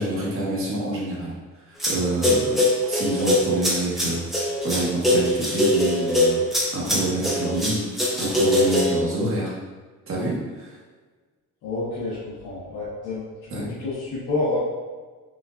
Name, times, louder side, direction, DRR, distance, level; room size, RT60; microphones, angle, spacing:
voice 1, 0.0-1.3 1.9-2.6 2.9-4.2 4.6-9.5 10.1-10.8 13.5-13.7, right 1 dB, 40° right, -5 dB, 1.2 m, -27 dB
sound 1, 1.8-2.0 2.2-9.0, left 1 dB, ahead, 0.7 m, -22 dB
voice 2, 11.6-13.2 13.5-14.6, left 2 dB, 90° left, -11 dB, 1.4 m, -28 dB
5.9 x 2.5 x 2.4 m, 1.4 s
cardioid pair, 150°, 33 cm